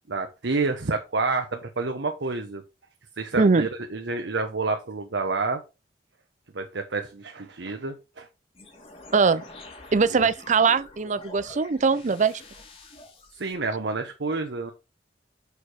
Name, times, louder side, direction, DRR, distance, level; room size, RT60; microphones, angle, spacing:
voice 1, 0.1-2.6 3.2-5.6 6.5-8.3 10.0-10.3 13.3-14.7, right 3 dB, 85° right, 1.0 m, -29 dB
voice 2, 3.4-3.7 9.1-9.4 9.9-12.4, right 4 dB, 45° right, 0.5 m, -21 dB
sound 1, 8.5-13.5, left 2 dB, 35° left, 2.3 m, -46 dB
6.7 x 4.8 x 4.9 m
head